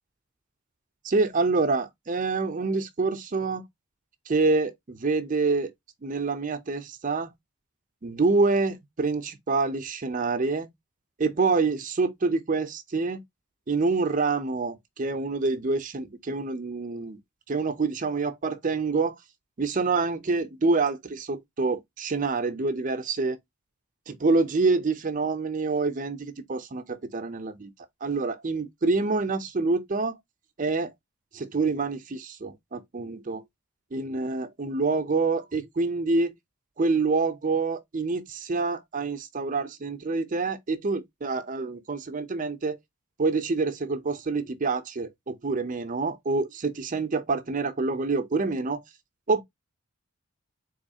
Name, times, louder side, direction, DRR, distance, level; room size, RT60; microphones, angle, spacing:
voice 1, 1.0-3.6 4.3-5.7 6.0-7.3 8.0-10.7 11.2-13.2 13.7-17.2 17.5-19.1 19.6-23.4 24.1-27.7 28.0-30.2 30.6-30.9 31.3-33.4 33.9-36.3 36.8-42.8 43.2-48.8 49.3-49.4, right 3 dB, 35° right, 0.5 m, -26 dB
4.0 x 3.0 x 2.7 m
head